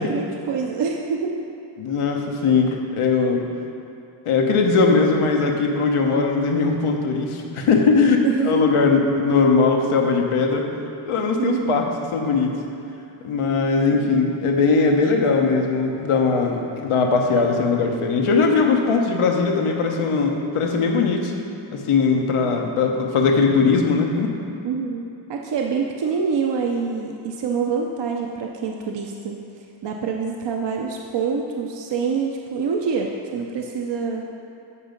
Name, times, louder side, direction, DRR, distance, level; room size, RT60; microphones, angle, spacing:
voice 1, 0.0-1.3 8.2-8.6 11.4-11.8 13.9-14.1 24.6-25.0 25.3-29.5 29.8-34.2, right 5 dB, 60° right, 1 dB, 0.7 m, -26 dB
voice 2, 1.8-3.4 4.2-8.2 8.4-10.6 11.1-12.5 13.2-21.3 21.7-24.3, left 4 dB, 85° left, 2 dB, 1.0 m, -20 dB
8.5 x 4.8 x 5.2 m, 2.8 s
cardioid pair, 75°, 49 cm